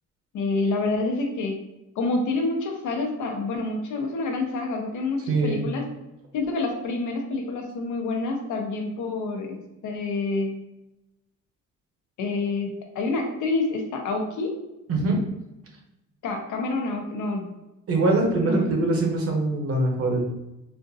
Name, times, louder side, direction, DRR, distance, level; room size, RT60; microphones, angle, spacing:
voice 1, 0.3-1.6 1.9-5.8 6.3-10.6 12.2-14.5 16.2-17.5 18.4-18.6, left 3 dB, 75° left, 2 dB, 0.8 m, -27 dB
voice 2, 5.3-5.7 14.9-15.2 17.9-20.2, right 2 dB, 50° right, 0 dB, 0.9 m, -23 dB
4.3 x 2.5 x 2.7 m, 0.94 s
cardioid pair, 165°, 31 cm